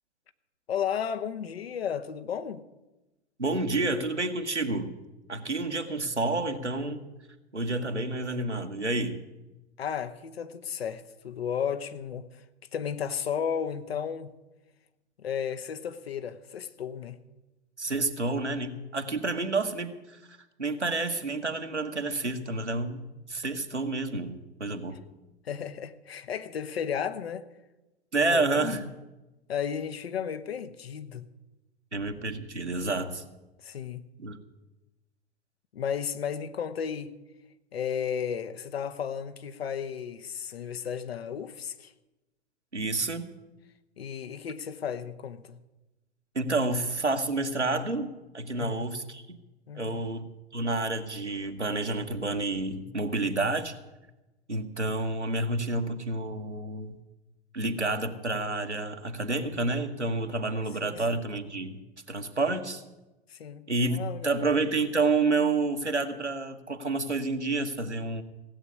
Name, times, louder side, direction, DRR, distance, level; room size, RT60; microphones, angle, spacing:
voice 1, 0.7-2.7 9.8-12.4 12.7-14.3 15.2-17.2 25.4-27.5 28.2-28.7 29.5-31.3 33.6-34.1 35.7-37.1 37.7-41.9 44.0-45.6 48.5-48.9 49.7-50.1 60.8-61.2 63.3-64.3, left 8 dB, 60° left, 1.2 m, -34 dB
voice 2, 3.4-4.9 5.3-7.0 7.5-9.2 17.8-25.0 28.1-28.8 31.9-33.2 34.2-34.4 42.7-43.3 46.3-49.4 49.7-53.7 54.5-57.0 57.5-61.8 62.1-62.8 63.7-68.2, right 2 dB, 90° right, 1.5 m, -29 dB
16.5 x 8.1 x 9.6 m
figure-of-eight pair, 100°, 33 cm